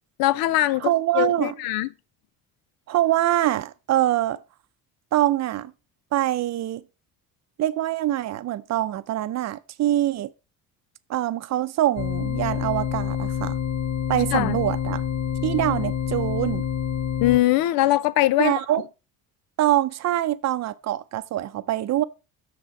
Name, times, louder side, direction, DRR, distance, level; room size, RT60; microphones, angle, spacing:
voice 1, 0.2-0.9 1.1-1.9 14.3-14.6 17.2-18.5, left 16 dB, 75° left, 0.6 m, -21 dB
voice 2, 0.8-1.6 2.9-4.4 5.1-5.7 6.1-6.8 7.6-10.3 11.1-13.6 14.1-15.0 15.4-16.7 18.4-18.8 19.6-22.0, right 13 dB, 50° right, 0.6 m, -24 dB
sound 1, 12.0-17.4, left 9 dB, 50° left, 0.8 m, -27 dB
6.8 x 6.7 x 4.8 m
cardioid pair, 135°, 35 cm